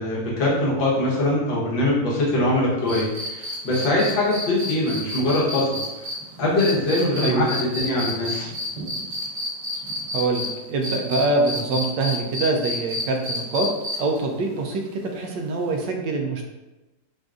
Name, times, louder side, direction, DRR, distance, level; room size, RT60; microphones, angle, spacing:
voice 1, 0.0-5.8 6.4-8.5, left 1 dB, 85° left, -6 dB, 1.9 m, -22 dB
sound 1, 2.9-10.5 10.8-14.2 15.8-15.9, left 1 dB, 45° right, 1.4 m, -30 dB
voice 2, 7.2-7.5 10.1-13.7 14.0-16.5, right 3 dB, 75° right, 3 dB, 1.2 m, -24 dB
6.1 x 2.5 x 2.4 m, 1.1 s
omnidirectional pair, 2.0 m